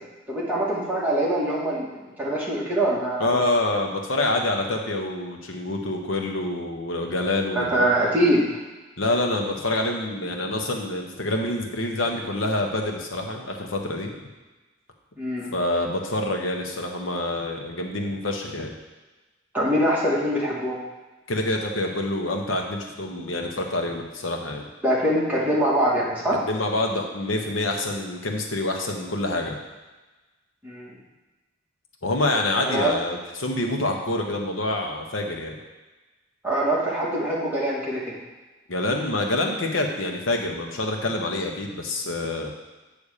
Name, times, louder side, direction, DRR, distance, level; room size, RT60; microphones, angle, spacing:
voice 1, 0.3-3.4 7.5-8.5 15.2-15.5 19.5-20.8 24.8-26.4 30.6-30.9 32.6-32.9 36.4-38.1, right 1 dB, 10° right, -7 dB, 2.1 m, -23 dB
voice 2, 3.2-7.9 9.0-14.1 15.5-18.7 21.3-24.7 26.4-29.5 32.0-35.5 38.7-42.5, left 2 dB, 80° left, 2 dB, 1.1 m, -26 dB
8.6 x 3.5 x 6.6 m, 1.2 s
head